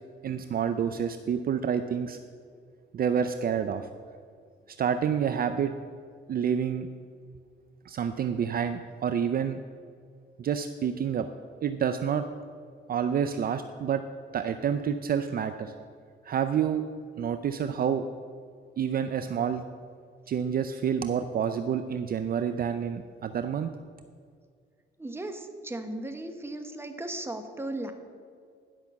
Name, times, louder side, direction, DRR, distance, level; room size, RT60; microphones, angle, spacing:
voice 1, 0.2-2.2 2.9-3.9 4.7-5.7 6.3-6.9 7.9-9.6 10.4-11.3 11.6-12.2 12.9-14.0 14.3-15.7 16.2-16.8 17.2-18.0 18.8-19.6 20.3-23.7, right 8 dB, 50° right, 9 dB, 0.5 m, -28 dB
voice 2, 25.0-27.9, right 1 dB, 10° right, 6 dB, 1.1 m, -36 dB
11.0 x 5.9 x 7.0 m, 2.1 s
cardioid pair, 90°, 20 cm